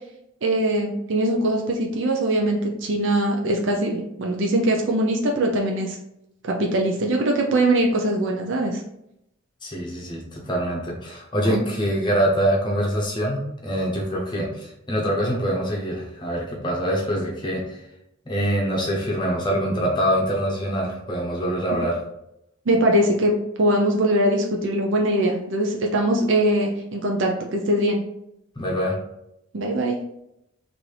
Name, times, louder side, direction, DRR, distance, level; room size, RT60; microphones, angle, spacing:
voice 1, 0.4-6.0 6.4-8.8 11.5-11.6 22.7-28.0 29.5-30.0, right 1 dB, 65° right, 0 dB, 0.5 m, -22 dB
voice 2, 9.6-17.8 18.3-22.0 28.6-29.0, equal, 20° left, -2 dB, 0.7 m, -24 dB
3.3 x 2.6 x 4.5 m, 0.81 s
head